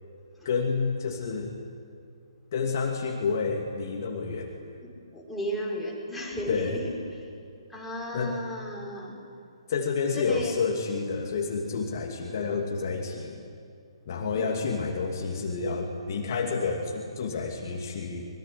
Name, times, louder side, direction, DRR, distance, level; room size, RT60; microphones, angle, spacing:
voice 1, 0.4-1.5 2.5-4.5 6.5-6.8 8.1-8.4 9.7-13.4 14.1-18.3, left 4 dB, 40° left, 1 dB, 2.6 m, -29 dB
voice 2, 4.8-7.3 7.7-9.2 10.1-10.6 14.3-14.6, equal, ahead, -4 dB, 4.7 m, -34 dB
24.5 x 22.5 x 10.0 m, 2.5 s
figure-of-eight pair, 135°, 3 cm